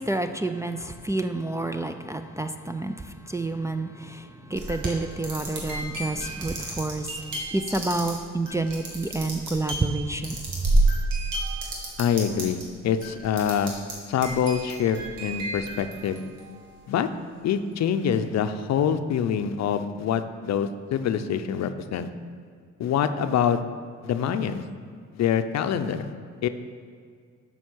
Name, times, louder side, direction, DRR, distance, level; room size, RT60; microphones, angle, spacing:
voice 1, 0.0-7.2 7.5-10.7, right 2 dB, 10° right, 5 dB, 0.4 m, -29 dB
sound 1, 4.5-12.6 13.0-13.9 14.2-16.6, right 2 dB, 90° right, 2.0 m, -30 dB
voice 2, 12.0-12.6 12.8-16.2 16.9-17.1 17.4-22.1 22.8-23.6 24.0-24.6 25.1-26.1 26.4-26.5, left 8 dB, 60° left, 10 dB, 0.6 m, -25 dB
7.1 x 5.6 x 6.2 m, 2.1 s
cardioid pair, 90°, 30 cm